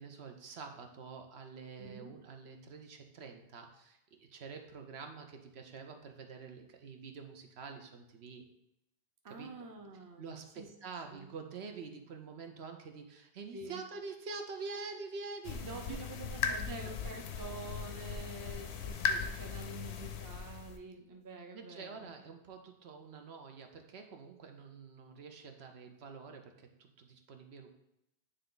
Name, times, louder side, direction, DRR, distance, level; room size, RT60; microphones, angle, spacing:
voice 1, 0.0-8.5 9.3-9.5 10.2-16.6 21.5-27.8, right 4 dB, 75° right, 5 dB, 1.0 m, -47 dB
voice 2, 1.8-2.1 9.2-10.7 11.1-11.3 13.5-13.8 15.7-16.0 16.3-22.1, right 3 dB, 25° right, 3 dB, 0.6 m, -48 dB
sound 1, 15.4-20.8, left 6 dB, 80° left, 0.9 m, -38 dB
9.5 x 3.4 x 3.9 m, 0.83 s
omnidirectional pair, 1.1 m